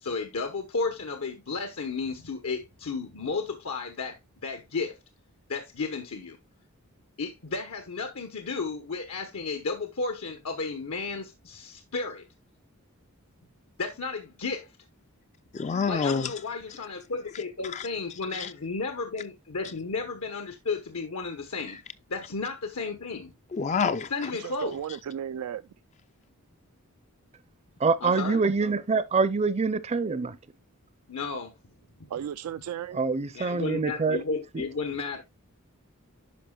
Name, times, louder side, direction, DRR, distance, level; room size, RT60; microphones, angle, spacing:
voice 1, 0.0-5.0 5.5-6.4 7.2-12.2 13.8-14.7 15.9-21.8 22.1-23.3 24.1-24.7 28.0-28.4 31.1-31.5 33.3-35.2, left 4 dB, 75° left, 1.0 m, -33 dB
voice 2, 15.5-16.3 17.7-17.8 18.4-18.5 23.5-24.1, left 5 dB, 30° left, 0.3 m, -27 dB
voice 3, 24.4-25.6 32.1-33.0, right 9 dB, 85° right, 0.3 m, -35 dB
voice 4, 27.8-30.4 32.9-34.2 34.5-34.6, right 4 dB, 30° right, 0.5 m, -25 dB
10.0 x 5.7 x 2.3 m
head